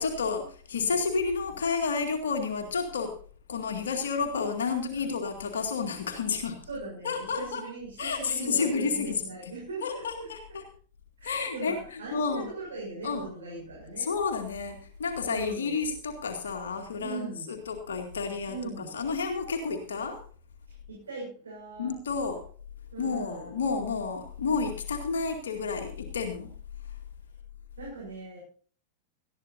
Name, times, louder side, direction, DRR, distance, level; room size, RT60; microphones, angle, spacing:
voice 1, 0.0-3.1 3.5-6.6 7.0-7.6 8.0-9.2 9.8-10.6 11.2-11.8 12.1-12.5 13.0-13.2 14.0-20.2 21.8-22.4 23.0-26.5 26.9-27.0, left 5 dB, 65° left, 4 dB, 2.1 m, -30 dB
voice 2, 6.6-10.3 11.2-14.1 15.3-15.8 17.0-17.5 18.5-18.9 20.7-21.9 22.9-23.6 27.8-28.4, right 3 dB, 70° right, -3 dB, 6.6 m, -40 dB
19.5 x 14.0 x 2.7 m, 0.42 s
figure-of-eight pair, 90°, 0 cm